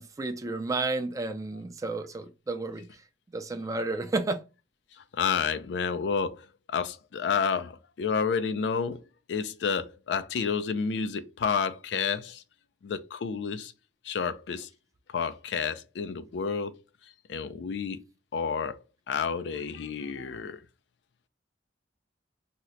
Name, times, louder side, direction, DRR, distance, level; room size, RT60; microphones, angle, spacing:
voice 1, 0.0-3.0 3.3-4.4, right 3 dB, 20° right, 0.3 m, -32 dB
voice 2, 5.1-9.0 9.3-12.4 12.8-13.7 14.0-14.7 15.1-16.7 17.3-18.0 18.3-18.8 19.1-20.6, left 6 dB, 80° left, 0.4 m, -30 dB
2.8 x 2.1 x 3.7 m
head